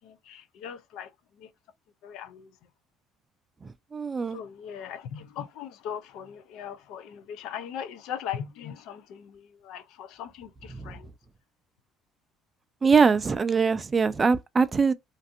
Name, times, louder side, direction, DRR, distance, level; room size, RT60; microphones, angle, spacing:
voice 1, 0.0-1.1 1.4-1.5 2.0-2.5 4.3-11.1, left 9 dB, 75° left, 0.4 m, -39 dB
voice 2, 3.6-4.4 10.7-11.0 12.8-14.9, right 5 dB, 20° right, 0.3 m, -23 dB
2.5 x 2.5 x 2.4 m
cardioid pair, 135°, 0 cm